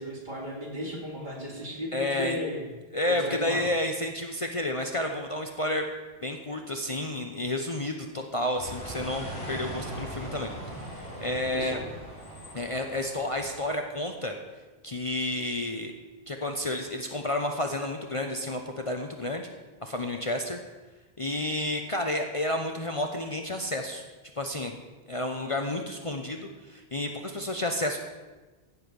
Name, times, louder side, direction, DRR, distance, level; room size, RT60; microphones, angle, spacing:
voice 1, 0.0-2.6 3.0-3.6 11.5-11.8, equal, 50° right, -3 dB, 3.0 m, -35 dB
voice 2, 1.9-2.4 2.9-5.9 6.2-10.5 10.9-11.8 12.5-14.4 14.8-15.9 16.3-19.5 19.8-20.6 21.2-24.0 24.4-24.8 25.1-28.0, left 1 dB, 35° left, 3 dB, 0.8 m, -30 dB
sound 1, 8.6-13.6, right 1 dB, 90° left, 4.6 m, -39 dB
15.5 x 5.7 x 7.0 m, 1.2 s
omnidirectional pair, 1.1 m